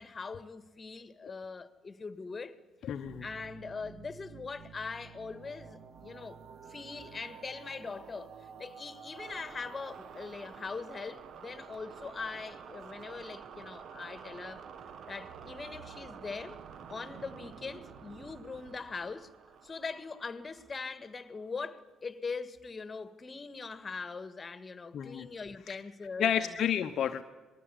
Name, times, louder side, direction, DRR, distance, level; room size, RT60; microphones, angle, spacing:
voice 1, 0.0-2.6 3.2-6.4 6.7-14.7 15.1-16.6 16.9-19.3 19.6-26.6, left 4 dB, 30° left, 1.8 m, -41 dB
voice 2, 2.8-3.2 24.9-25.3 25.7-25.8 26.2-27.2, left 9 dB, 55° left, 1.0 m, -31 dB
sound 1, 3.0-21.5, right 7 dB, 55° right, 1.5 m, -50 dB
27.0 x 20.5 x 8.5 m
hypercardioid pair, 50°, 0 cm